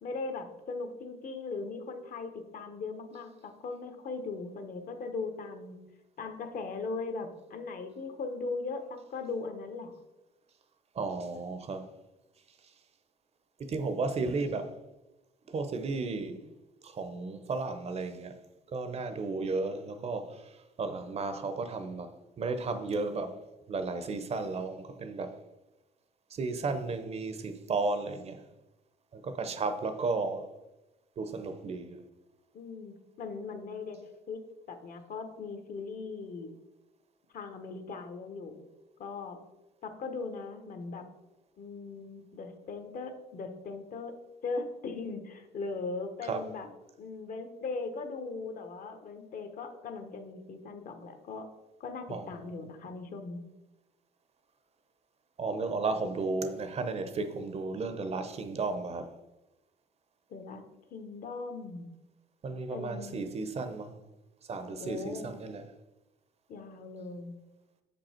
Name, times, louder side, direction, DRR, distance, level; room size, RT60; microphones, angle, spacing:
voice 1, 0.0-5.8 6.2-9.9 32.5-34.0 34.3-34.4 34.7-36.5 37.3-38.6 39.0-39.4 39.8-41.1 41.6-44.1 44.4-46.7 47.0-51.5 51.8-53.4 60.3-60.6 60.9-61.8 62.7-63.2 64.8-65.3 66.5-67.3, left 4 dB, 55° left, 1.1 m, -39 dB
voice 2, 11.0-11.9 13.7-14.7 15.5-16.4 16.8-18.3 18.7-20.5 20.8-22.1 22.4-23.4 23.7-25.4 26.3-28.4 29.1-30.5 31.2-32.0 46.3-46.4 52.1-52.5 55.4-59.1 62.4-63.9 64.5-65.6, right 3 dB, 40° right, 0.7 m, -34 dB
6.8 x 5.3 x 4.3 m
cardioid pair, 110°, 17 cm